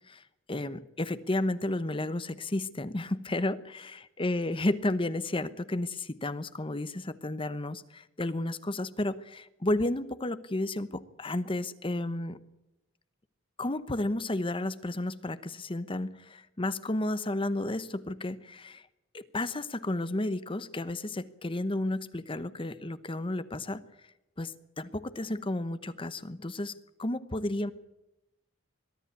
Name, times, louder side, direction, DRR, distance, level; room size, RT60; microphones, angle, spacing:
voice 1, 0.1-12.4 13.6-18.9 19.1-23.8 24.4-27.7, left 1 dB, 25° left, 14 dB, 0.9 m, -32 dB
22.5 x 13.0 x 9.5 m, 0.90 s
head